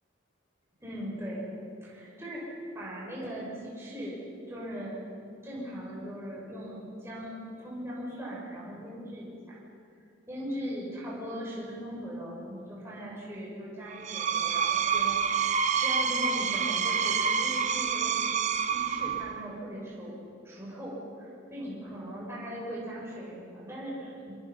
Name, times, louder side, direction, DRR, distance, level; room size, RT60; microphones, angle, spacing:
voice 1, 0.8-1.5 1.8-5.0 5.4-9.6 10.3-15.2 15.4-18.4 18.6-20.2 20.4-24.4, equal, 15° right, -6 dB, 6.2 m, -39 dB
Screech, 13.9-19.4, right 6 dB, 35° right, 0.8 m, -27 dB
26.5 x 25.5 x 5.5 m, 2.4 s
head